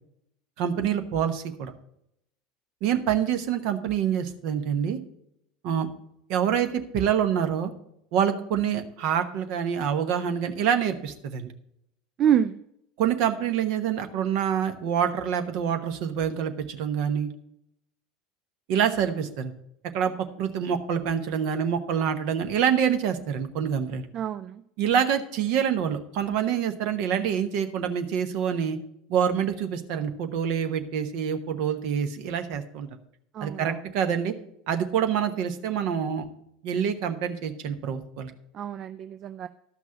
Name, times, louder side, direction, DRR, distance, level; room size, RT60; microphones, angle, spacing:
voice 1, 0.6-1.7 2.8-5.0 5.6-5.9 6.3-7.7 8.1-11.5 13.0-17.3 18.7-19.5 19.9-20.1 20.4-24.1 24.8-28.8 29.1-32.9 33.4-34.3 34.7-36.3 36.6-38.3, right 8 dB, 55° right, 8 dB, 1.1 m, -26 dB
voice 2, 12.2-12.6 24.1-24.6 33.3-33.8 38.5-39.5, right 9 dB, 40° right, 12 dB, 0.4 m, -26 dB
12.5 x 6.0 x 5.7 m, 0.77 s
figure-of-eight pair, 75°, 0 cm